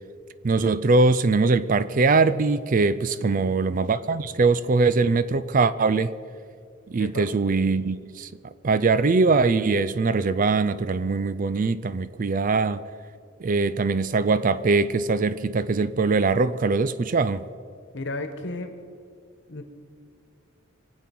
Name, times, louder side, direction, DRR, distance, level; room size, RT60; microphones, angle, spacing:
voice 1, 0.4-6.1 6.9-8.3 8.6-12.8 13.4-17.4, right 3 dB, 40° right, 0.4 m, -22 dB
voice 2, 3.1-3.5 7.0-7.3 17.9-18.7 19.5-19.6, left 2 dB, 55° left, 1.4 m, -34 dB
25.0 x 8.4 x 6.0 m
head